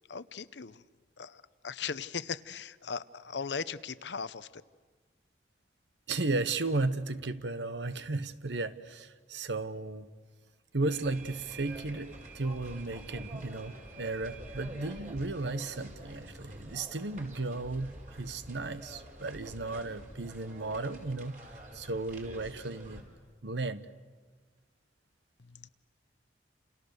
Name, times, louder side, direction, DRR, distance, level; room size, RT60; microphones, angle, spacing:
voice 1, 0.1-0.8 1.2-4.6 25.4-25.7, left 6 dB, 80° left, 0.8 m, -38 dB
voice 2, 6.1-10.1 10.7-21.4 21.7-23.0 23.4-23.9, right 3 dB, 80° right, 1.1 m, -34 dB
sound 1, 10.9-23.0, right 1 dB, 45° right, 4.7 m, -47 dB
29.5 x 29.0 x 6.7 m
head